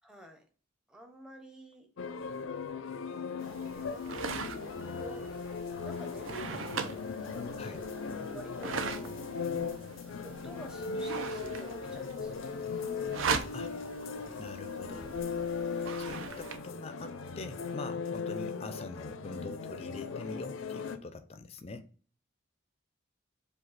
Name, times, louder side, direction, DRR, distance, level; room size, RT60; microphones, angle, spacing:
voice 1, 0.0-0.4 0.9-1.9 3.3-4.1 4.5-5.5 5.8-9.2 10.2-12.5 15.7-16.0 18.3-18.5, right 1 dB, 5° right, 0.7 m, -49 dB
sound 1, 2.0-21.0, left 5 dB, 85° left, 0.4 m, -38 dB
sound 2, 3.4-16.6, right 5 dB, 90° right, 0.5 m, -40 dB
voice 2, 14.4-15.2 16.0-21.9, left 3 dB, 30° left, 0.4 m, -44 dB
sound 3, 18.4-20.4, right 2 dB, 60° right, 0.9 m, -63 dB
5.0 x 2.3 x 4.0 m
head